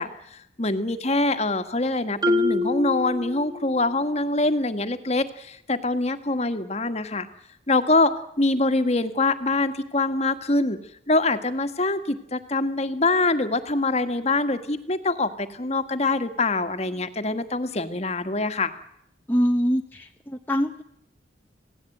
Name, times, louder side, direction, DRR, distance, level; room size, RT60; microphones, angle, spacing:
voice 1, 0.0-7.3 7.7-10.8 11.1-18.7, left 2 dB, 35° left, 9 dB, 1.7 m, -24 dB
Marimba xylophone, 2.2-4.0, left 2 dB, 20° right, 2.4 m, -26 dB
voice 2, 19.3-20.8, equal, 10° left, 2 dB, 1.0 m, -24 dB
27.0 x 18.0 x 9.2 m, 0.75 s
head